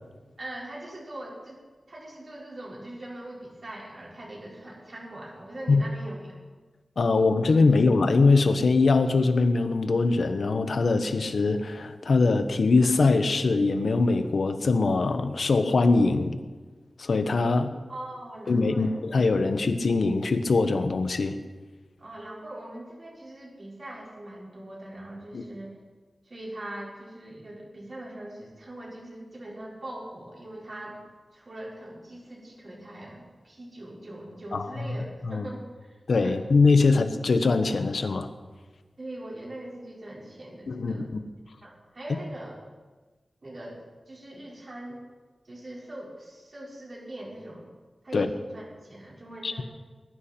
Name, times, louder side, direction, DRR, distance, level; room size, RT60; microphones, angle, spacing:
voice 1, 0.4-1.6 1.9-6.4 7.1-7.5 7.8-7.9 17.9-19.0 22.0-25.7 26.2-31.0 31.3-35.0 35.3-35.9 36.2-36.3 36.9-37.0 39.0-41.2 41.6-42.6 43.4-43.8 44.1-45.0 45.4-47.7 48.0-49.6, right 1 dB, 45° right, -4 dB, 4.8 m, -41 dB
voice 2, 7.0-16.4 17.0-17.7 18.5-21.4 25.3-25.4 34.5-34.7 35.3-35.5 36.1-38.3 40.7-41.2 48.1-48.3 49.4-49.6, left 3 dB, 75° left, 8 dB, 1.1 m, -22 dB
20.5 x 11.5 x 4.4 m, 1.3 s
wide cardioid pair, 100°, 0 cm